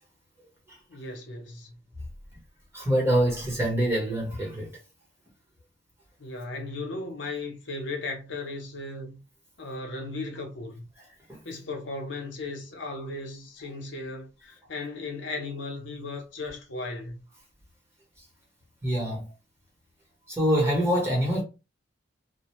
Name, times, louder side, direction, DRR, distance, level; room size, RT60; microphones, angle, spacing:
voice 1, 0.9-1.8 6.2-9.2 9.6-10.9 11.4-17.2, left 3 dB, 70° left, 0.8 m, -36 dB
voice 2, 2.7-4.7 11.3-11.4 18.8-19.3 20.3-21.4, equal, 15° right, 0.9 m, -25 dB
2.5 x 2.0 x 3.0 m
head